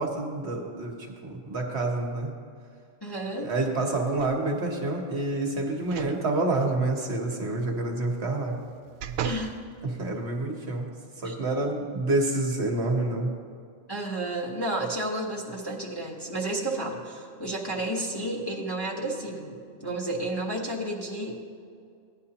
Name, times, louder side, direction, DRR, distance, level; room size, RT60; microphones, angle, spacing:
voice 1, 0.0-2.3 3.3-8.6 9.8-10.9 11.2-13.3, right 2 dB, 55° right, 1 dB, 1.3 m, -28 dB
voice 2, 3.0-3.5 9.2-9.5 11.2-11.4 13.9-21.4, right 1 dB, 20° left, -4 dB, 1.1 m, -31 dB
sound 1, 4.2-4.7 5.8-6.2 6.6-6.7 8.3-9.6 10.1-10.2, right 8 dB, 85° right, 1.0 m, -36 dB
15.5 x 10.0 x 2.9 m, 2.3 s
omnidirectional pair, 1.4 m